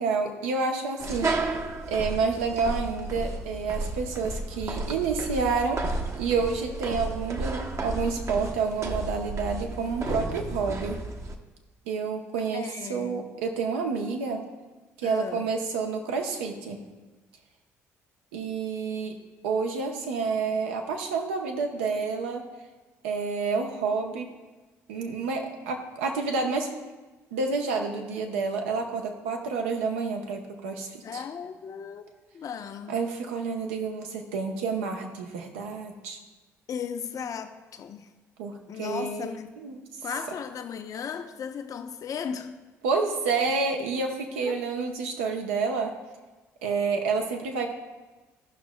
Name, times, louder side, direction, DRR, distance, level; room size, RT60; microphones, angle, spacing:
voice 1, 0.0-1.6 1.9-11.0 11.9-14.4 15.0-16.8 18.3-19.2 19.4-22.4 23.0-24.3 24.9-26.7 27.3-31.2 32.9-36.2 38.4-39.8 42.8-45.9 46.6-47.7, right 4 dB, 85° right, 0.8 m, -29 dB
sound 1, 1.0-11.3, right 2 dB, 45° right, 0.8 m, -33 dB
voice 2, 12.5-13.3 15.0-15.5 31.0-32.0 32.3-32.9 36.7-38.1 38.7-39.5 40.0-42.5 44.4-44.6, left 7 dB, 55° left, 0.7 m, -36 dB
15.0 x 6.0 x 2.2 m
hypercardioid pair, 50°, 7 cm